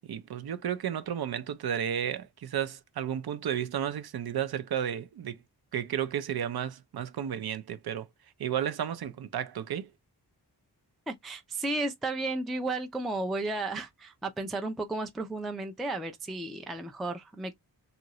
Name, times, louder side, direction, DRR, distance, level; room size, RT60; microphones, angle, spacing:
voice 1, 0.1-5.4 5.7-8.1 8.4-9.9, right 9 dB, 60° right, 0.5 m, -32 dB
voice 2, 11.1-17.5, right 2 dB, ahead, 0.3 m, -33 dB
2.8 x 2.5 x 2.9 m
wide cardioid pair, 105°, 42 cm